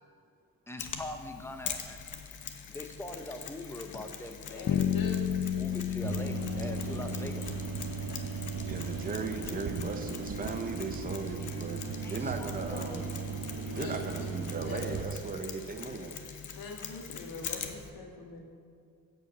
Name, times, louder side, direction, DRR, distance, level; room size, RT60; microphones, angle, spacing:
voice 1, 0.7-2.2 2.7-4.9 5.5-7.6 11.4-11.7 12.0-13.4, left 1 dB, 5° left, 6 dB, 0.9 m, -43 dB
Mechanisms, 0.8-17.9, left 7 dB, 60° left, 1.1 m, -44 dB
voice 2, 4.5-5.9 8.1-8.2 13.7-14.2 14.6-15.0 16.6-18.5, left 3 dB, 80° left, 2 dB, 1.7 m, -42 dB
Bass guitar, 4.7-8.7, left 9 dB, 40° left, 0.4 m, -32 dB
sound 1, 6.0-15.0, right 5 dB, 50° right, 1.0 m, -37 dB
voice 3, 8.7-13.1 13.7-16.2, right 4 dB, 25° right, 5 dB, 0.8 m, -37 dB
15.5 x 5.6 x 7.4 m, 2.2 s
wide cardioid pair, 135°, 34 cm